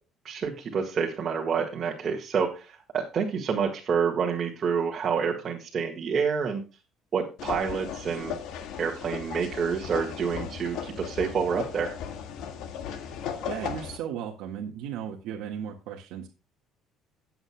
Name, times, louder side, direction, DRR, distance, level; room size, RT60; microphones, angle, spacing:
voice 1, 0.2-6.6 7.1-8.3 8.8-12.0, right 6 dB, 35° right, 0 dB, 1.7 m, -28 dB
sound 1, 7.4-14.0, left 7 dB, 70° left, 1.8 m, -36 dB
voice 2, 13.5-16.3, right 9 dB, 80° right, 0 dB, 1.6 m, -36 dB
18.0 x 7.9 x 2.2 m, 0.31 s
cardioid pair, 160°, 0 cm